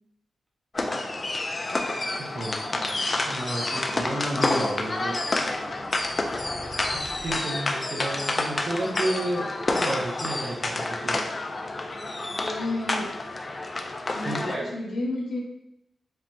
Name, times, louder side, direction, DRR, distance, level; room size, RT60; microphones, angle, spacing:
sound 1, 0.7-14.6, left 2 dB, 25° left, 0.4 m, -29 dB
voice 1, 2.2-5.2 6.9-11.2 14.2-14.6, right 1 dB, 40° right, -2 dB, 0.7 m, -32 dB
sound 2, 4.9-7.4, equal, 80° right, 0.9 m, -46 dB
voice 2, 12.3-13.1 14.1-15.4, left 2 dB, 80° left, -3 dB, 1.2 m, -31 dB
7.4 x 2.7 x 2.2 m, 0.84 s
wide cardioid pair, 160°, 0 cm